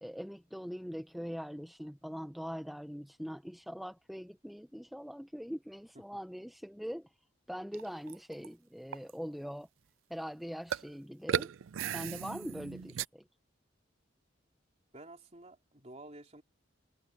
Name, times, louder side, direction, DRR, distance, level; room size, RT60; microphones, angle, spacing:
voice 1, 0.0-7.1 7.5-9.7 10.1-11.5 11.9-13.2, equal, ahead, 0.6 m, -42 dB
sound 1, 7.7-8.5 8.9-9.1 10.7-10.9 11.3-13.1, right 8 dB, 90° right, 0.4 m, -36 dB
voice 2, 14.9-16.4, right 2 dB, 35° right, 3.7 m, -51 dB
head